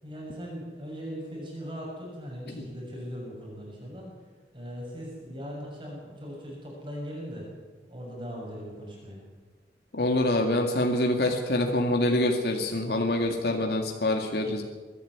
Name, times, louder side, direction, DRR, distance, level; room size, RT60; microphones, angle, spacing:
voice 1, 0.0-4.1 4.5-7.5 7.9-9.2, equal, 30° right, -3 dB, 6.7 m, -39 dB
voice 2, 9.9-14.6, left 1 dB, 65° left, 3 dB, 2.2 m, -25 dB
23.5 x 11.5 x 9.7 m, 1.3 s
head